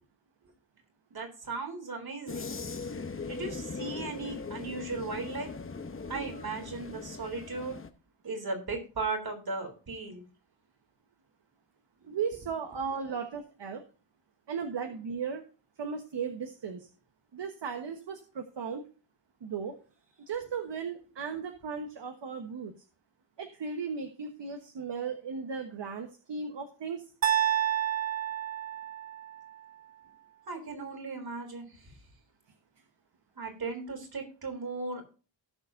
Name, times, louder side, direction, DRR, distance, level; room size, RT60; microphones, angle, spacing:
voice 1, 1.1-2.5 3.3-5.5 6.1-7.8 8.2-10.2 30.5-31.8 33.4-35.0, right 3 dB, 55° right, 4 dB, 3.5 m, -37 dB
sound 1, 2.3-7.9, left 4 dB, 30° left, 0.9 m, -40 dB
voice 2, 12.1-13.8 14.5-15.4 15.8-16.9 17.3-18.8 19.4-19.8 20.3-22.7 23.4-27.1, right 6 dB, 70° right, 6 dB, 1.3 m, -36 dB
sound 2, 27.2-29.4, right 10 dB, 40° right, 0.9 m, -29 dB
17.5 x 6.9 x 2.6 m, 0.36 s
wide cardioid pair, 175°, 44 cm